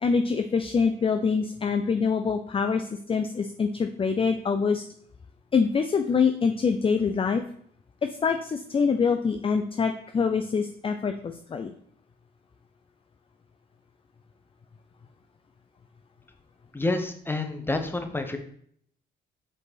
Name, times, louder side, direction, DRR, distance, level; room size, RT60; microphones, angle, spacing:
voice 1, 0.0-4.8 5.5-7.4 8.0-11.7, left 5 dB, 25° left, 6 dB, 0.5 m, -25 dB
voice 2, 16.7-18.4, left 2 dB, 10° left, 6 dB, 0.9 m, -28 dB
5.3 x 4.8 x 4.0 m, 0.64 s
cardioid pair, 90°, 20 cm